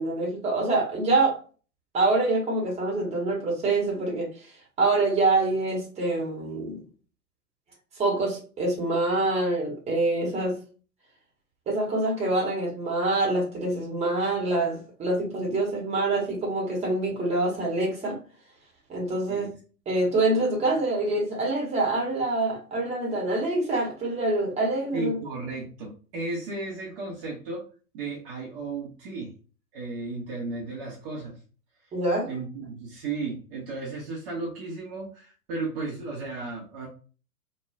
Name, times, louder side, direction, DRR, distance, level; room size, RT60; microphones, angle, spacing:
voice 1, 0.0-1.4 1.9-4.3 4.8-6.8 8.0-10.6 11.7-18.2 18.9-19.5 19.9-25.2 31.9-32.3, right 2 dB, 15° right, 1.0 m, -25 dB
voice 2, 24.9-27.6 27.9-29.3 29.7-31.4 32.3-36.9, right 3 dB, 40° right, 0.8 m, -34 dB
3.1 x 2.3 x 2.3 m
figure-of-eight pair, 105°, 46 cm